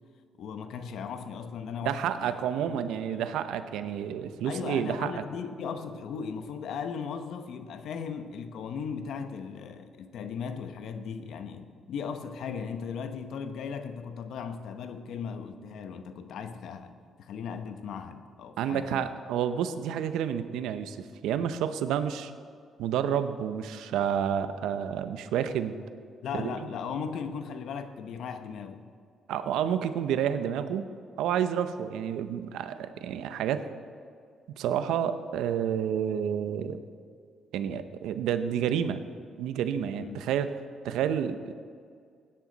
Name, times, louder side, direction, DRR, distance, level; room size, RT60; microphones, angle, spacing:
voice 1, 0.4-2.4 2.6-3.4 4.5-19.1 26.2-28.9 39.9-40.2, left 6 dB, 75° left, 9 dB, 1.0 m, -37 dB
voice 2, 1.8-5.1 18.6-22.3 22.8-25.8 26.3-26.5 29.3-30.9 31.2-33.6 34.6-36.8 37.5-39.0 39.4-40.5 40.8-41.5, right 9 dB, 90° right, 11 dB, 0.7 m, -29 dB
16.5 x 10.0 x 4.1 m, 2.2 s
cardioid pair, 90°, 0 cm